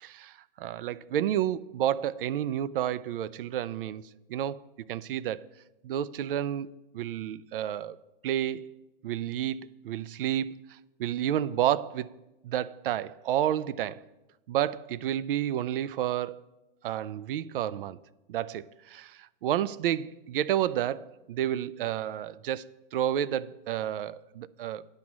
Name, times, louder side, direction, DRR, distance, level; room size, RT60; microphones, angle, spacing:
voice 1, 0.0-5.5 5.8-6.7 6.9-8.0 8.2-8.6 9.0-9.6 9.8-12.1 12.4-14.0 14.5-16.4 16.8-18.0 18.3-22.6 22.9-24.9, right 11 dB, 65° right, 0.5 m, -30 dB
9.9 x 6.2 x 7.3 m
hypercardioid pair, 140°, 29 cm